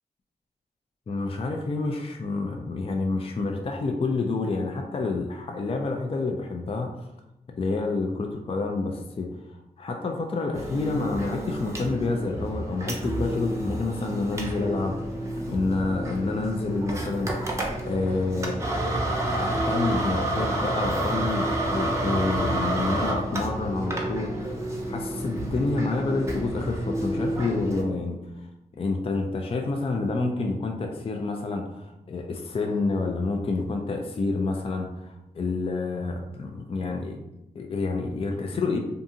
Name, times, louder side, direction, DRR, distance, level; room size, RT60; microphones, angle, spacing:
voice 1, 1.1-7.1 7.6-9.3 9.8-15.0 15.5-18.6 19.3-28.5 28.8-37.2 37.5-38.8, left 3 dB, 35° left, 2 dB, 0.4 m, -28 dB
sound 1, 10.5-27.8, right 1 dB, 15° right, 0.7 m, -29 dB
2.6 x 2.4 x 2.6 m, 0.91 s
supercardioid pair, 45°, 17 cm